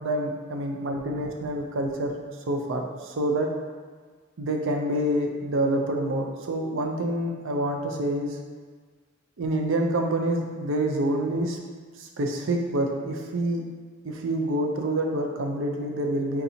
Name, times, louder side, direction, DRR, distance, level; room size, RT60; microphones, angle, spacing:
voice 1, 0.0-2.2 2.5-3.5 4.4-8.4 9.4-11.6 12.0-13.6 14.0-16.4, right 1 dB, 65° right, 2 dB, 0.5 m, -27 dB
3.8 x 2.7 x 4.2 m, 1.5 s
head